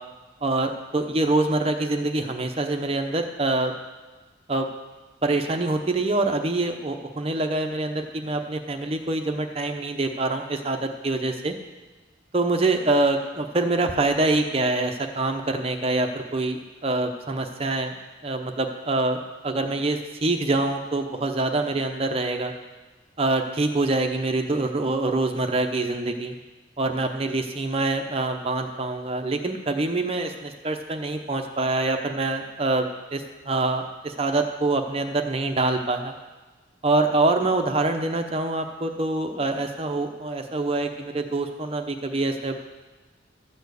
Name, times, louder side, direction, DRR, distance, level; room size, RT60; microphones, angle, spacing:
voice 1, 0.4-3.7 4.5-4.7 5.2-11.5 12.3-18.0 18.2-22.5 23.2-26.3 26.8-36.1 36.8-42.6, right 2 dB, 30° right, 5 dB, 0.7 m, -25 dB
13.0 x 4.4 x 8.2 m, 1.3 s
head